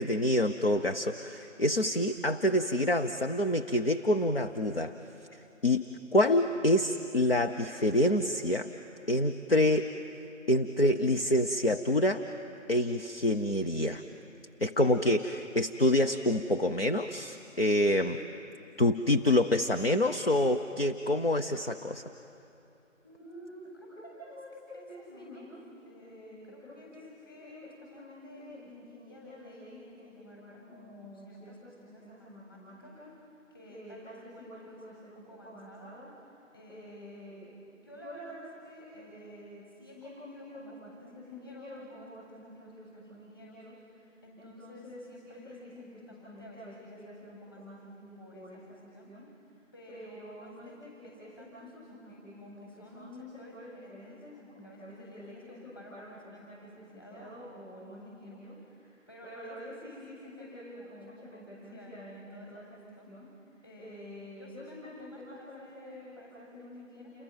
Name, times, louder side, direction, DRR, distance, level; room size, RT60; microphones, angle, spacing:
voice 1, 0.0-5.0 5.6-5.9 6.1-8.7 9.1-9.9 10.5-12.3 12.7-14.0 14.6-18.2 18.8-22.0, left 1 dB, 45° left, 6 dB, 0.9 m, -26 dB
voice 2, 23.0-25.5 25.8-33.0 33.5-35.9 36.5-37.3 37.7-39.5 39.7-49.5 49.7-67.2, left 1 dB, 15° left, -7 dB, 7.5 m, -48 dB
29.5 x 23.0 x 7.5 m, 2.7 s
figure-of-eight pair, 175°, 40 cm